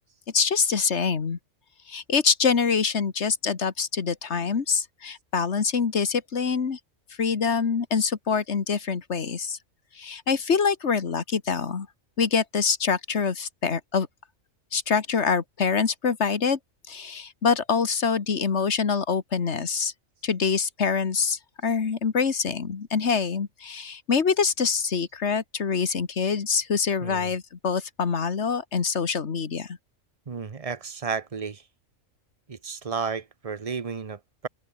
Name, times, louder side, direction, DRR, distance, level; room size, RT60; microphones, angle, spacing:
voice 1, 0.3-1.4 1.9-6.8 7.2-9.6 10.0-11.9 12.2-14.1 14.7-16.6 16.9-19.9 20.2-29.8, left 5 dB, 55° left, 1.8 m, -25 dB
voice 2, 30.3-31.6 32.5-34.5, right 5 dB, 30° right, 0.8 m, -32 dB
open air
omnidirectional pair, 1.4 m